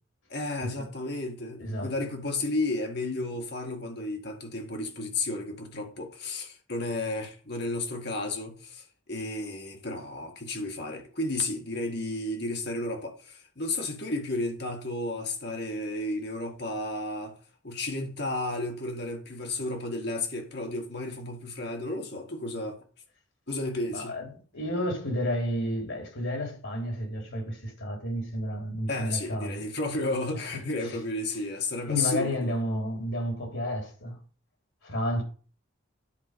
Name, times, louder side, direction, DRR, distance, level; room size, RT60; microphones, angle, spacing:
voice 1, 0.3-17.4 17.6-22.8 23.5-24.2 28.9-32.5, left 2 dB, 55° left, 1.8 m, -32 dB
voice 2, 1.6-1.9 23.9-24.3 24.5-29.6 30.3-31.0 31.9-34.2 34.8-35.2, equal, 80° left, 4.0 m, -31 dB
11.0 x 5.0 x 6.8 m
head